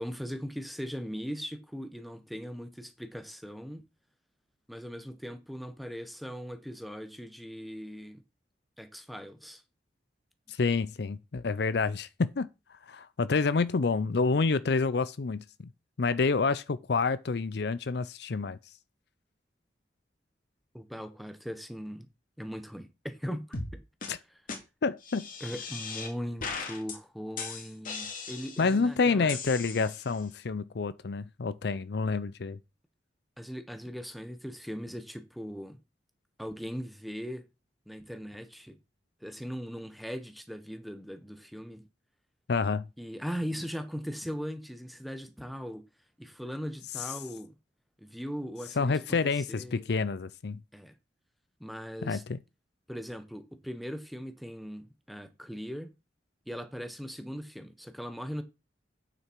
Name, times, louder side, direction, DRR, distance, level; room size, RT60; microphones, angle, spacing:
voice 1, 0.0-3.8 4.7-8.2 8.8-9.6 20.7-22.1 22.4-23.8 24.1-24.2 25.4-29.4 29.6-29.9 33.4-35.8 36.4-37.4 37.9-38.8 39.2-41.8 43.0-45.8 46.2-47.5 48.0-49.9 50.7-50.9 51.6-52.2 52.9-55.9 56.5-58.4, equal, ahead, 1.1 m, -39 dB
voice 2, 10.5-12.5 12.9-15.7 16.0-18.6 24.1-24.2 24.8-25.3 28.6-32.6 42.5-42.9 48.8-50.6 52.0-52.4, left 4 dB, 65° left, 0.5 m, -28 dB
sound 1, 23.5-23.7 24.0-24.1 24.5-24.6 25.0-26.1 26.4-27.0 27.4-28.8 29.3-30.2, left 4 dB, 50° left, 2.2 m, -38 dB
8.9 x 6.9 x 4.6 m
head